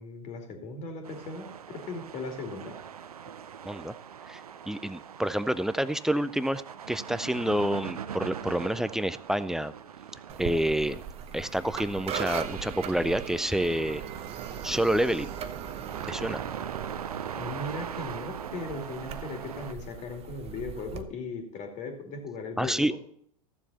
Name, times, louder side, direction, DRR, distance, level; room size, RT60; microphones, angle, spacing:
voice 1, 0.0-2.8 17.4-23.0, left 3 dB, 40° left, 4 dB, 2.6 m, -38 dB
sound 1, 1.0-19.7, right 8 dB, 85° right, 0.6 m, -41 dB
voice 2, 4.7-6.6 6.9-9.7 10.4-11.0 11.3-14.0 14.6-15.3 16.1-16.4 22.6-23.0, right 1 dB, ahead, 15 dB, 0.4 m, -28 dB
sound 2, 10.3-21.0, right 8 dB, 30° right, 0.9 m, -39 dB
14.0 x 7.2 x 4.1 m, 0.64 s
hypercardioid pair, 95°, 19 cm